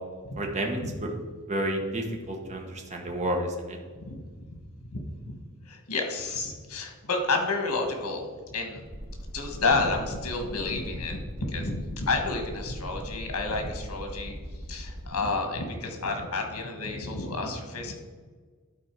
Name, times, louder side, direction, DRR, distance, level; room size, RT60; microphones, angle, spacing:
voice 1, 0.4-0.8 1.5-3.8, right 1 dB, 30° right, 1 dB, 1.0 m, -30 dB
voice 2, 4.8-5.3 5.6-8.8 9.3-14.3 14.7-17.9, left 3 dB, 85° left, 4 dB, 1.5 m, -30 dB
sound 1, 8.8-15.1, equal, 55° right, 1.2 m, -39 dB
11.0 x 4.3 x 4.6 m, 1.5 s
head